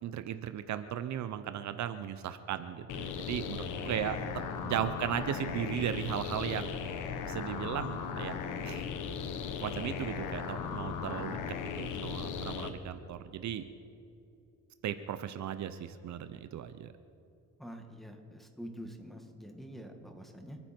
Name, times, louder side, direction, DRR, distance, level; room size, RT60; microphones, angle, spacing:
voice 1, 0.0-4.2 4.6-6.7 7.3-8.4 8.6-8.8 9.6-11.4 11.8-13.7 14.8-16.9, right 10 dB, 70° right, 11 dB, 0.8 m, -36 dB
sound 1, 2.9-12.7, left 6 dB, 90° left, 1.2 m, -37 dB
voice 2, 3.9-4.9 17.6-20.6, equal, ahead, 3 dB, 2.1 m, -47 dB
28.5 x 9.9 x 4.5 m, 2.6 s
cardioid pair, 90°, 30 cm